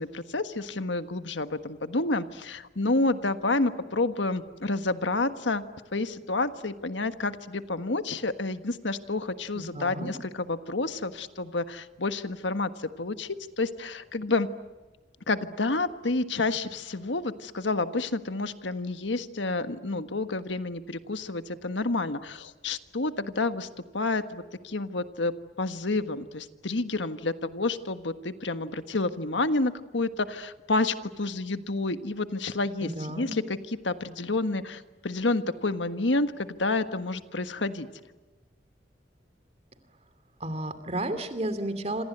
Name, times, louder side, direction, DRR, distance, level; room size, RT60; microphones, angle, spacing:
voice 1, 0.0-5.6 5.9-14.5 15.3-23.7 23.9-37.9, left 2 dB, 90° left, 10 dB, 1.5 m, -29 dB
voice 2, 9.5-10.1 32.8-33.4 40.4-42.0, right 1 dB, 35° right, 11 dB, 2.8 m, -32 dB
27.5 x 27.0 x 8.0 m, 1.2 s
head